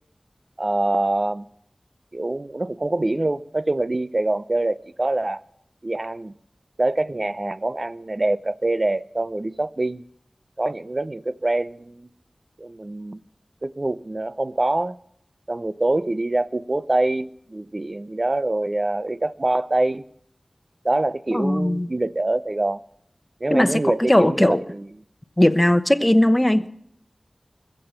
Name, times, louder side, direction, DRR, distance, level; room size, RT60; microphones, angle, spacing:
voice 1, 0.6-1.4 2.1-5.4 5.8-6.3 6.8-10.0 10.6-12.1 12.6-13.2 13.6-15.0 15.5-20.0 20.8-22.8 23.4-24.9, right 2 dB, 50° right, 0.6 m, -25 dB
voice 2, 21.3-21.9 23.5-23.8 24.1-24.6 25.4-26.7, left 1 dB, 20° left, 0.9 m, -18 dB
21.0 x 7.7 x 5.8 m
wide cardioid pair, 40°, 0 cm